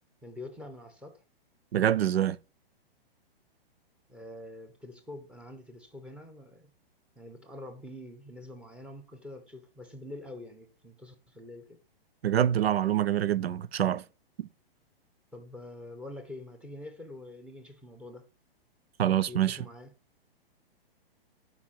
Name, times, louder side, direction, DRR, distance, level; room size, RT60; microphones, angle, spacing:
voice 1, 0.2-1.2 4.1-6.7 7.1-11.8 15.3-18.2 19.3-19.9, left 1 dB, 5° right, 1.2 m, -45 dB
voice 2, 1.7-2.4 12.2-14.0 14.4-14.5 19.0-19.6, right 11 dB, 85° right, 0.6 m, -25 dB
12.0 x 5.2 x 4.4 m
hypercardioid pair, 130°, 30 cm